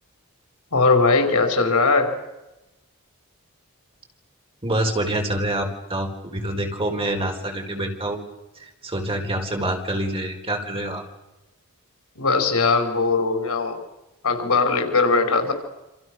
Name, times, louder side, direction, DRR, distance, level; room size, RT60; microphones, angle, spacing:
voice 1, 0.7-2.2 12.2-13.8 14.2-15.5, left 3 dB, 75° left, 5 dB, 5.3 m, -20 dB
voice 2, 4.6-8.2 8.6-11.0, right 1 dB, 25° right, 2 dB, 4.4 m, -26 dB
28.5 x 27.0 x 6.5 m, 1.0 s
head